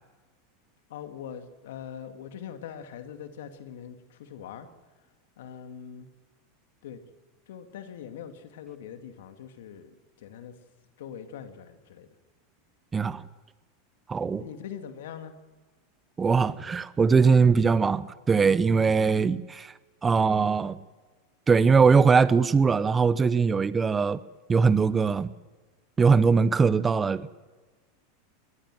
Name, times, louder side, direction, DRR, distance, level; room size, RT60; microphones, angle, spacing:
voice 1, 0.9-4.7 5.4-6.1 6.8-7.0 7.5-10.5 11.0-12.1 14.3-15.3, left 8 dB, 80° left, 2.4 m, -42 dB
voice 2, 12.9-13.2 14.1-14.4 16.2-19.7 20.0-20.8 21.5-24.2 24.5-25.3 26.0-27.3, right 5 dB, 20° right, 0.9 m, -21 dB
22.5 x 18.5 x 7.8 m
supercardioid pair, 125°, 0 cm